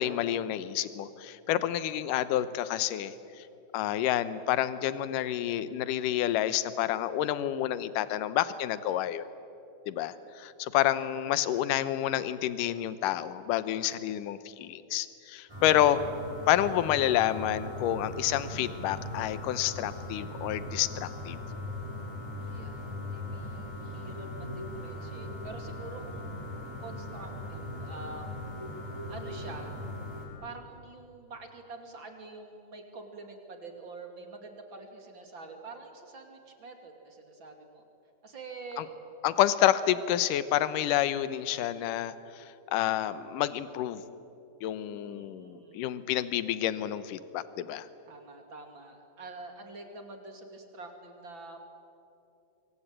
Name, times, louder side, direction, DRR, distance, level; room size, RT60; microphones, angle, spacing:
voice 1, 0.0-3.5 3.7-9.3 9.9-16.0 16.5-21.4 38.8-38.9 39.2-42.4 42.7-44.0 44.6-47.9, left 12 dB, 75° left, 14 dB, 2.4 m, -29 dB
voice 2, 11.4-11.7 22.5-28.5 29.1-29.8 30.4-37.8 38.2-38.9 44.9-45.9 48.0-51.6, right 3 dB, 35° right, 4 dB, 3.0 m, -46 dB
sound 1, 15.5-30.2, left 1 dB, 5° right, 6.3 m, -39 dB
25.0 x 24.0 x 9.0 m, 2.7 s
omnidirectional pair, 4.1 m